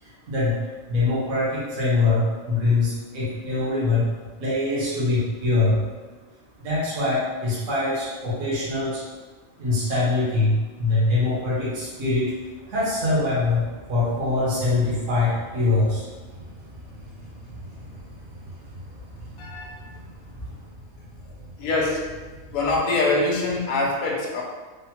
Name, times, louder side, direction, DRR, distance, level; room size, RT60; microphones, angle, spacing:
voice 1, 0.0-4.1 4.4-5.8 6.6-9.0 9.6-12.3 12.7-13.6 13.9-16.1, left 2 dB, 70° right, -8 dB, 1.2 m, -23 dB
sound 1, 10.8-22.8, equal, 40° right, 0.6 m, -44 dB
voice 2, 19.4-19.9 21.6-22.1 22.5-24.4, left 2 dB, 70° left, -1 dB, 0.4 m, -24 dB
3.3 x 2.0 x 2.8 m, 1.3 s
omnidirectional pair, 1.4 m